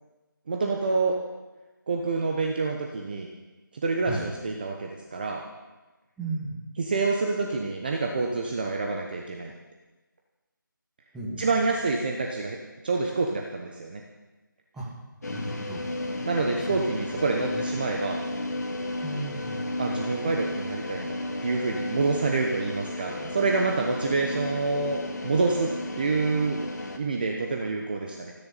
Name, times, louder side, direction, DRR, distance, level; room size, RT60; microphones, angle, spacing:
voice 1, 0.5-1.2 1.9-3.3 3.7-5.4 6.8-9.5 11.4-12.6 12.8-14.0 16.2-18.2 19.8-21.1 21.4-26.6 27.0-28.3, right 3 dB, 25° right, 1 dB, 1.0 m, -27 dB
voice 2, 6.2-6.6 11.1-11.5 14.7-14.9 15.3-15.8 16.7-16.8 17.1-17.2 17.5-17.6 19.0-19.7, right 2 dB, 5° right, -7 dB, 1.7 m, -35 dB
sound 1, 15.2-27.0, left 1 dB, 50° left, 2.0 m, -33 dB
28.0 x 10.5 x 4.2 m, 1.2 s
figure-of-eight pair, 165°, 11 cm